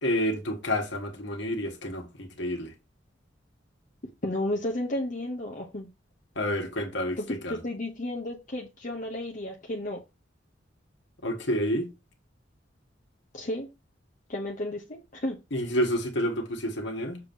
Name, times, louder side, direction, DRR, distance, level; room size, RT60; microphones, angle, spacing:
voice 1, 0.0-2.7 6.3-7.6 11.2-11.9 15.5-17.2, equal, 70° left, 1.6 m, -29 dB
voice 2, 4.2-5.9 7.2-10.0 13.3-13.7 14.3-15.4, left 1 dB, 45° left, 0.9 m, -33 dB
6.8 x 2.9 x 5.3 m
head